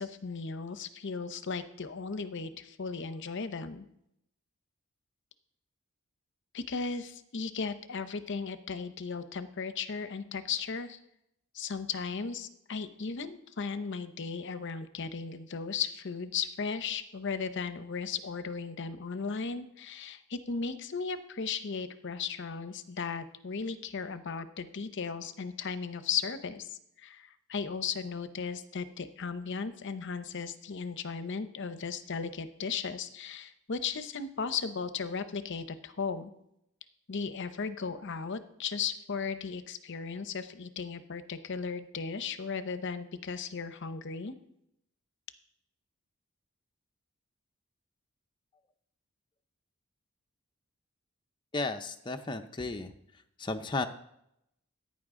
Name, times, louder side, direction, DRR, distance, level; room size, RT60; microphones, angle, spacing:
voice 1, 0.0-3.9 6.5-11.0 11.5-36.3 37.1-44.3, left 5 dB, 55° left, 11 dB, 0.7 m, -36 dB
voice 2, 51.5-52.9 53.4-53.9, left 3 dB, 20° left, 6 dB, 0.5 m, -34 dB
15.0 x 9.5 x 3.7 m, 0.78 s
head